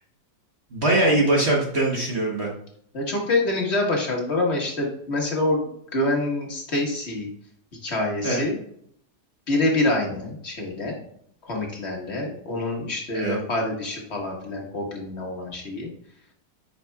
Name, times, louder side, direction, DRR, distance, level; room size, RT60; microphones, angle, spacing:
voice 1, 0.7-2.5 8.2-8.4 13.1-13.4, right 2 dB, 40° right, -2 dB, 1.2 m, -22 dB
voice 2, 2.9-7.3 7.8-8.6 9.5-11.0 11.4-15.9, left 2 dB, 40° left, -1 dB, 1.6 m, -26 dB
8.6 x 5.4 x 2.3 m, 0.67 s
omnidirectional pair, 2.0 m